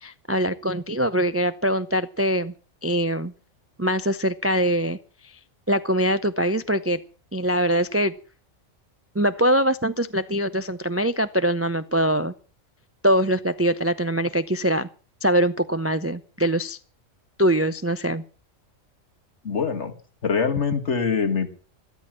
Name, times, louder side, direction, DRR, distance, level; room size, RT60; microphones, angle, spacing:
voice 1, 0.0-2.5 2.8-3.3 3.8-5.0 5.7-7.0 7.3-8.1 9.1-12.3 13.0-14.9 15.2-16.8 17.4-18.2, equal, 20° right, 12 dB, 0.4 m, -23 dB
voice 2, 19.4-19.9 20.2-21.5, left 5 dB, 60° left, 8 dB, 2.1 m, -24 dB
13.0 x 13.0 x 7.4 m, 0.39 s
omnidirectional pair, 1.3 m